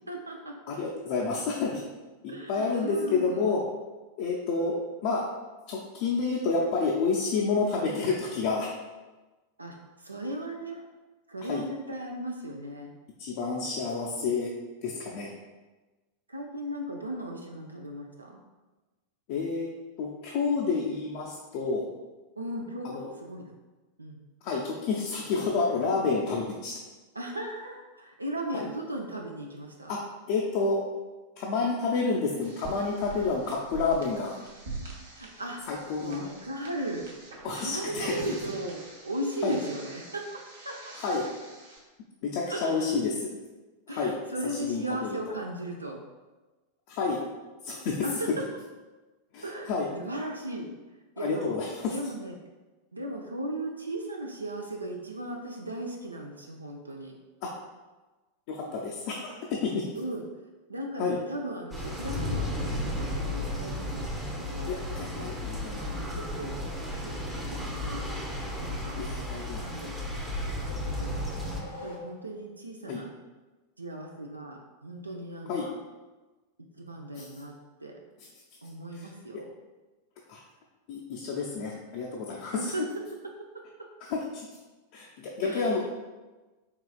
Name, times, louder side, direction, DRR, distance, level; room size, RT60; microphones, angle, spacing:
voice 1, 0.1-0.5 2.3-3.6 9.6-10.8 11.3-12.9 16.3-18.4 22.4-23.5 24.0-24.2 27.1-30.0 35.2-35.6 36.0-37.1 37.5-40.4 40.6-40.9 42.5-42.9 43.9-46.0 48.0-48.4 49.4-51.5 51.9-52.3 52.9-57.2 59.9-60.2 60.7-65.3 65.7-66.5 66.9-67.2 67.5-68.2 68.6-69.0 69.6-70.1 70.8-73.1 73.8-75.8 76.8-77.5 77.8-78.0 78.6-79.5 82.5-82.8 85.4-85.9, right 1 dB, 80° right, 1 dB, 0.4 m, -37 dB
voice 2, 0.7-1.8 2.2-3.6 4.2-5.2 5.7-8.7 11.5-11.6 13.2-14.5 14.8-15.3 19.3-19.7 20.0-21.8 22.8-23.1 24.4-26.8 28.5-28.7 29.9-30.0 30.3-30.8 31.4-34.4 35.7-36.2 37.4-38.2 39.4-39.6 41.0-41.2 42.2-43.3 43.9-44.1 44.4-45.4 46.9-47.2 47.6-48.1 49.3-49.9 51.2-51.9 57.4-57.5 58.5-59.8 61.0-61.2 64.7-65.9 69.0-69.6 72.9-73.0 75.5-75.7 77.2-77.3 79.0-79.1 80.3-80.4 80.9-82.7 84.1-84.4 84.9-85.9, left 4 dB, 45° left, -3 dB, 0.5 m, -29 dB
sound 1, 32.4-41.8, right 3 dB, 65° right, 0.8 m, -44 dB
sound 2, 61.7-71.6, left 1 dB, 5° right, 0.6 m, -34 dB
sound 3, 69.7-72.5, left 2 dB, 70° left, 0.9 m, -46 dB
4.6 x 3.0 x 2.3 m, 1.2 s
figure-of-eight pair, 90°, 0 cm